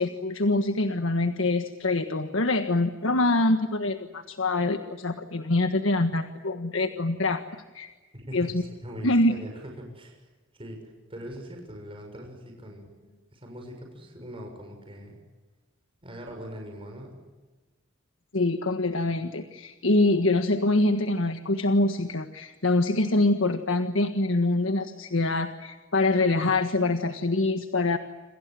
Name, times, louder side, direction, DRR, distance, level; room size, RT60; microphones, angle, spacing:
voice 1, 0.0-7.4 7.7-7.9 8.3-8.6 9.0-9.3 18.3-28.0, left 2 dB, 75° left, 7 dB, 1.5 m, -25 dB
voice 2, 8.1-10.3 10.6-15.2 16.0-17.2, equal, 30° right, 2 dB, 6.5 m, -41 dB
27.5 x 27.5 x 7.8 m, 1.3 s
head